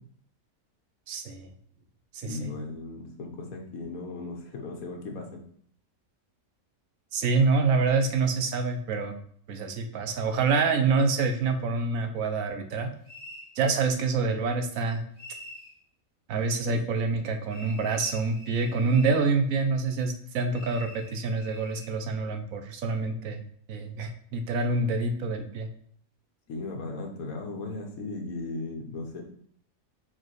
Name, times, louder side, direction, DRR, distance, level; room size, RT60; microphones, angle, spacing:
voice 1, 1.1-1.5 2.1-2.5 7.1-9.2 9.5-12.9 13.6-15.0 16.3-23.4 23.7-25.7, right 4 dB, 75° right, 6 dB, 1.2 m, -26 dB
voice 2, 2.2-5.4 16.7-16.8 26.5-29.2, left 3 dB, 90° left, 2 dB, 1.5 m, -37 dB
sound 1, 13.0-13.5 15.2-15.7 17.5-19.2 20.5-21.9, left 1 dB, 35° left, 1.7 m, -46 dB
4.8 x 4.2 x 4.6 m, 0.62 s
omnidirectional pair, 1.5 m